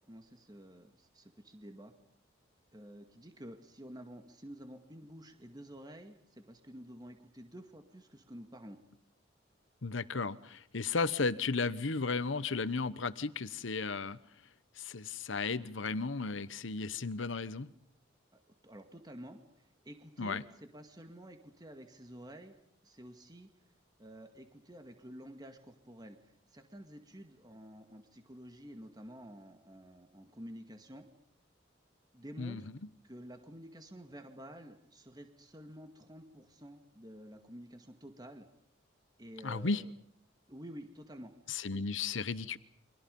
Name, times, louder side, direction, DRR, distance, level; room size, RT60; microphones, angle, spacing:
voice 1, 0.1-1.9 2.7-8.8 18.3-20.4 20.7-22.5 22.8-23.5 24.0-31.1 32.1-32.7 33.0-38.5 39.2-39.9 40.5-41.3 41.7-41.8, equal, 20° right, 6 dB, 2.1 m, -50 dB
voice 2, 9.8-14.2 14.8-17.7 20.2-20.4 32.4-32.7 39.4-39.8 41.5-42.6, left 4 dB, 75° left, 15 dB, 1.0 m, -34 dB
30.0 x 25.0 x 5.5 m, 0.68 s
head